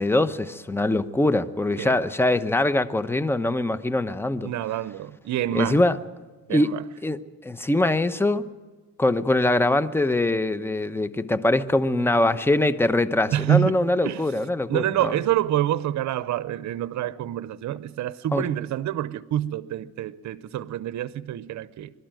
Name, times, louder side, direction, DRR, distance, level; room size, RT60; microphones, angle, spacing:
voice 1, 0.0-4.5 5.5-6.0 6.5-6.7 7.0-7.2 7.4-8.4 9.0-15.1 18.3-18.4, left 2 dB, 10° left, 0.9 m, -23 dB
voice 2, 4.4-5.8 6.5-6.8 13.3-14.2 14.7-21.9, right 12 dB, 65° right, 0.7 m, -27 dB
23.0 x 12.5 x 9.1 m
cardioid pair, 90°, 30 cm